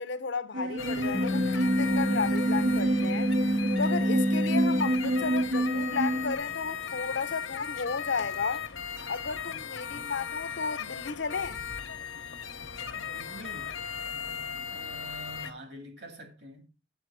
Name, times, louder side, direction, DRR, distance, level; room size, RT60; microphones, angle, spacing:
voice 1, 0.0-3.3 3.8-8.6 9.1-11.6, left 5 dB, 60° left, 0.6 m, -33 dB
sound 1, 0.5-6.4, right 1 dB, 80° right, 0.7 m, -28 dB
sound 2, 0.8-15.5, left 7 dB, 80° left, 1.0 m, -37 dB
sound 3, 1.1-5.6, equal, 10° left, 0.4 m, -29 dB
voice 2, 12.9-13.7 14.7-16.7, right 1 dB, 55° right, 2.2 m, -46 dB
7.9 x 7.8 x 4.8 m
head